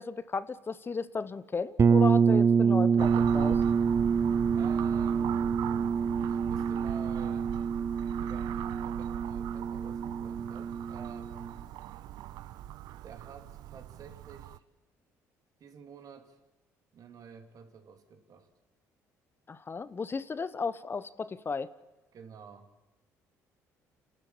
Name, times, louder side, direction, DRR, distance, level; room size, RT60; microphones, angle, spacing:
voice 1, 0.0-3.6 19.5-21.7, left 4 dB, 30° left, 16 dB, 1.1 m, -34 dB
sound 1, 1.8-11.5, right 6 dB, 40° right, 0.7 m, -26 dB
sound 2, 3.0-14.6, right 13 dB, 75° right, 0.7 m, -39 dB
voice 2, 4.5-5.4 6.2-7.6 8.2-11.6 13.0-14.6 15.6-16.4 16.9-18.5 22.1-22.7, right 6 dB, 55° right, 6 dB, 3.2 m, -50 dB
28.5 x 13.0 x 8.7 m, 1.1 s
supercardioid pair, 70°, 7 cm